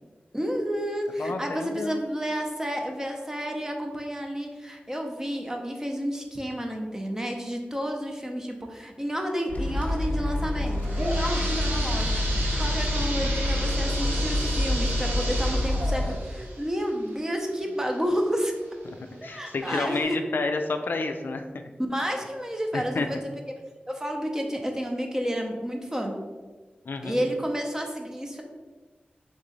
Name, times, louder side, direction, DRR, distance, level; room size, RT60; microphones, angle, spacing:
voice 1, 0.3-18.5 19.2-20.2 21.9-23.2 23.9-26.1 27.0-28.4, equal, 15° right, 2 dB, 0.7 m, -30 dB
voice 2, 1.2-2.0 18.9-21.7 22.7-23.1 26.9-27.2, left 3 dB, 75° left, 6 dB, 0.3 m, -30 dB
sound 1, 9.5-16.1, left 1 dB, 40° left, 0.9 m, -27 dB
sound 2, 10.6-18.2 18.7-18.8 19.5-19.6 20.0-20.1, right 1 dB, 75° right, 0.9 m, -33 dB
3.6 x 3.1 x 3.8 m, 1.3 s
cardioid pair, 50°, 4 cm